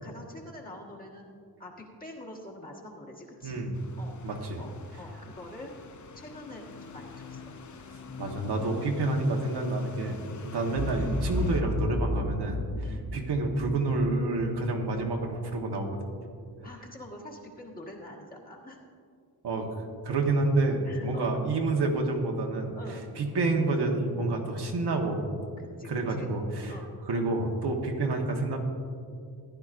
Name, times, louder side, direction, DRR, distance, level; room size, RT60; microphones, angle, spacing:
voice 1, 0.0-1.3 1.6-3.6 4.0-4.2 4.6-4.7 5.0-5.7 6.1-7.4 12.8-13.0 16.6-18.8 20.8-21.4 22.7-23.1 25.6-26.3 26.7-26.9, left 1 dB, 20° left, -2 dB, 1.5 m, -45 dB
voice 2, 3.4-3.7 4.2-4.6 8.2-10.2 10.4-12.6 13.1-16.1 19.4-19.7 20.0-22.7 23.2-25.3 25.8-26.7 27.0-28.6, right 2 dB, 70° right, 1 dB, 1.3 m, -28 dB
sound 1, 3.7-11.6, left 4 dB, 45° left, 0.7 m, -45 dB
Boom, 10.7-15.0, left 1 dB, 10° right, 1.0 m, -32 dB
15.0 x 11.0 x 2.5 m, 2.3 s
wide cardioid pair, 145°, 41 cm